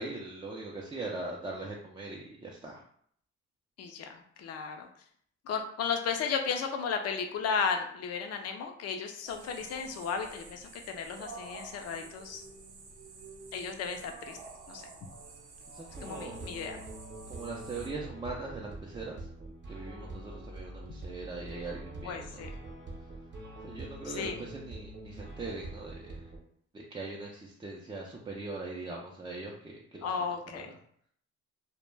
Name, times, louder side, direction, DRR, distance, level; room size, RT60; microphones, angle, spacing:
voice 1, 0.0-2.8 15.7-16.5 17.3-19.2 19.7-22.1 23.6-26.2 26.7-30.1, right 3 dB, 15° right, -3 dB, 0.4 m, -41 dB
voice 2, 3.8-4.9 5.5-12.4 13.5-14.4 14.7-14.8 16.0-16.8 22.0-22.5 24.0-24.4 30.0-30.7, left 6 dB, 55° left, 4 dB, 0.5 m, -34 dB
sound 1, 9.3-17.9, right 3 dB, 90° right, 0.6 m, -49 dB
sound 2, 15.8-26.4, right 2 dB, 35° right, 0.8 m, -45 dB
2.1 x 2.1 x 3.2 m, 0.63 s
cardioid pair, 90°, 30 cm